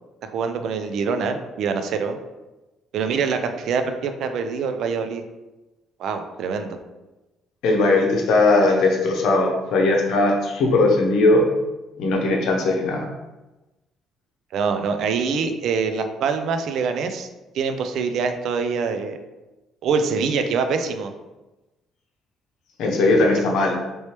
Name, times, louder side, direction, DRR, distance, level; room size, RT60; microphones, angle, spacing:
voice 1, 0.2-2.2 2.9-5.2 6.0-6.8 14.5-17.3 17.5-19.2 19.8-21.1, right 5 dB, 70° right, 7 dB, 0.3 m, -24 dB
voice 2, 7.6-11.4 12.0-13.1 22.8-23.8, left 2 dB, 75° left, 0 dB, 0.7 m, -19 dB
3.0 x 2.8 x 3.2 m, 1.1 s
supercardioid pair, 80°, 0 cm